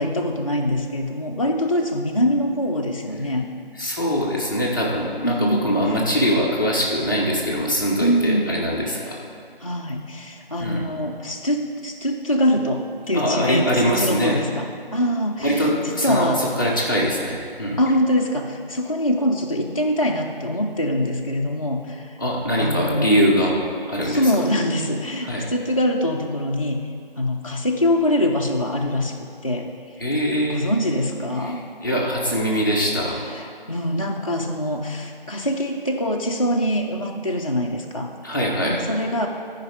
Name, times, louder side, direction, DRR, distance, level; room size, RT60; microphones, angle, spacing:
voice 1, 0.0-3.5 5.2-5.8 8.0-8.6 9.6-14.7 14.9-16.4 17.8-22.2 22.6-23.2 24.0-26.8 27.2-29.7 30.5-31.6 33.4-38.1 38.7-39.3, equal, 35° left, 1 dB, 0.5 m, -24 dB
voice 2, 3.8-9.2 10.6-10.8 13.1-14.4 15.4-17.8 22.2-23.6 23.9-24.3 25.2-25.5 30.0-30.6 31.4-31.5 31.8-33.3 38.2-38.8, equal, 20° left, -5 dB, 0.9 m, -22 dB
13.5 x 5.1 x 4.8 m, 2.3 s
figure-of-eight pair, 165°, 30 cm